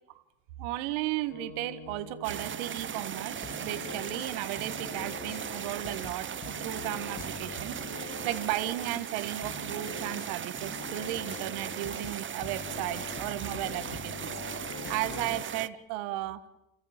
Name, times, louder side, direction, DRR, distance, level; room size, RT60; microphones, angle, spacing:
voice 1, 0.6-14.3 14.6-16.4, right 15 dB, 80° right, 12 dB, 1.8 m, -35 dB
sound 1, 1.3-5.7, left 2 dB, 55° left, 5.5 m, -50 dB
sound 2, 2.2-15.7, right 8 dB, 25° right, 0.8 m, -38 dB
sound 3, 3.4-8.8 9.4-15.4, left 8 dB, 35° left, 1.0 m, -44 dB
29.0 x 15.0 x 9.0 m, 0.95 s
supercardioid pair, 95°, 45 cm